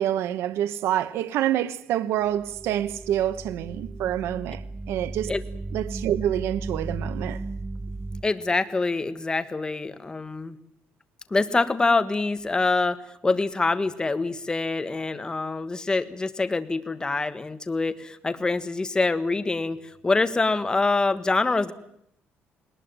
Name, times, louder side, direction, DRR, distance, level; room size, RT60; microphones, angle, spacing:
voice 1, 0.0-5.3 5.7-7.4, right 11 dB, 85° right, 1.1 m, -27 dB
sound 1, 2.2-8.2, right 2 dB, 25° right, 1.6 m, -35 dB
voice 2, 8.2-10.6 11.3-21.7, left 3 dB, 20° left, 1.5 m, -25 dB
20.5 x 19.5 x 9.0 m
cardioid pair, 120°, 4 cm